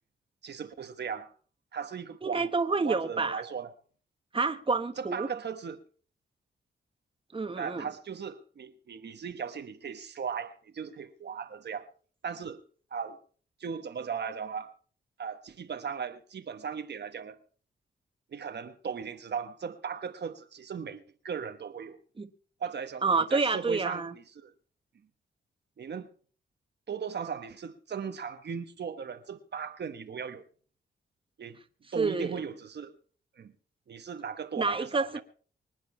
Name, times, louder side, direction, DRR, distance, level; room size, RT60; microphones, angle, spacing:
voice 1, 0.4-1.3 1.7-3.7 5.0-5.8 7.6-11.9 12.2-12.6 12.9-13.2 13.6-14.7 15.2-17.4 18.3-22.0 22.6-23.0 23.3-24.5 25.8-26.1 26.9-30.5 31.4-31.6 31.9-32.9 33.4-33.5 33.9-35.2, right 6 dB, 60° right, 1.2 m, -37 dB
voice 2, 2.2-3.4 4.3-5.3 7.3-7.9 22.2-22.3 23.0-24.1 31.9-32.4 34.6-35.1, right 4 dB, 25° right, 1.4 m, -28 dB
25.0 x 9.3 x 4.4 m
cardioid pair, 90°, 20 cm